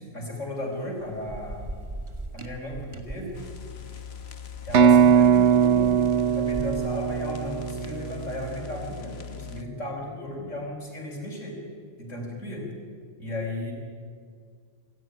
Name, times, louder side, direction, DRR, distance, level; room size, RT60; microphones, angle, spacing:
voice 1, 0.0-1.7 2.3-3.4 4.6-11.6 12.0-12.7 13.2-13.7, left 1 dB, 80° left, 1 dB, 5.3 m, -35 dB
Thunder / Rain, 0.6-8.2, right 1 dB, 25° right, 1.5 m, -41 dB
sound 1, 3.3-9.6, left 9 dB, 55° left, 1.4 m, -41 dB
sound 2, 4.7-8.5, right 7 dB, 65° right, 1.3 m, -20 dB
27.0 x 14.0 x 10.0 m, 2.1 s
omnidirectional pair, 1.3 m